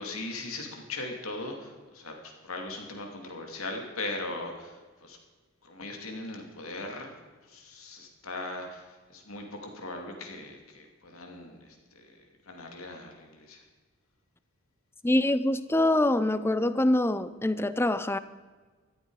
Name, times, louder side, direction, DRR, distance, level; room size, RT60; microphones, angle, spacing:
voice 1, 0.0-5.2 5.6-7.1 7.5-12.2 12.5-13.6, left 2 dB, 90° left, 2.6 m, -39 dB
voice 2, 15.0-18.2, left 1 dB, 10° left, 0.5 m, -25 dB
15.0 x 13.0 x 4.9 m
head